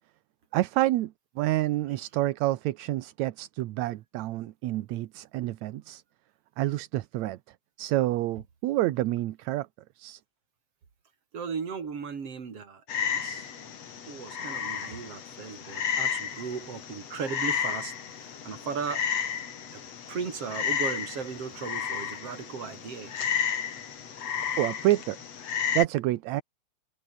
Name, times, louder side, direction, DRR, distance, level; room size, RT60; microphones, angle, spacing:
voice 1, 0.5-6.0 6.6-7.4 7.8-9.7 10.0-10.2 24.6-25.2 25.8-26.4, right 16 dB, 75° right, 2.0 m, -28 dB
voice 2, 11.3-13.5 14.1-17.9 18.4-19.0 19.7-19.8 20.1-23.3, right 6 dB, 50° right, 4.1 m, -36 dB
Frog, 12.9-25.8, left 7 dB, 55° left, 3.2 m, -32 dB
omnidirectional pair, 3.5 m